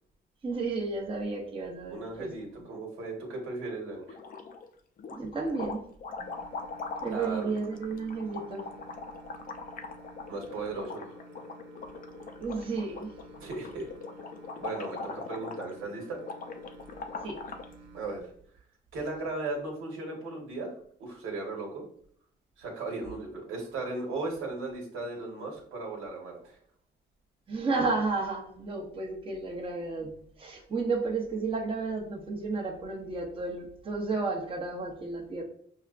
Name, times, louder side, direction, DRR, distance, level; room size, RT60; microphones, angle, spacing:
voice 1, 0.4-2.3 5.2-5.8 7.0-8.6 12.4-13.1 17.2-17.4 27.5-30.1 30.4-35.4, right 3 dB, 25° right, 0 dB, 0.8 m, -32 dB
voice 2, 1.9-4.2 7.1-7.5 10.3-11.2 13.4-13.9 14.6-16.2 17.9-18.3 18.9-20.7 21.0-21.8 22.6-26.6, right 3 dB, 80° right, -1 dB, 1.3 m, -36 dB
sound 1, 4.0-4.7 5.0-17.7, left 4 dB, 45° left, 0.5 m, -41 dB
sound 2, 6.2-18.2, right 3 dB, 60° right, 0.8 m, -52 dB
5.5 x 2.2 x 2.4 m, 0.62 s
cardioid pair, 90°, 20 cm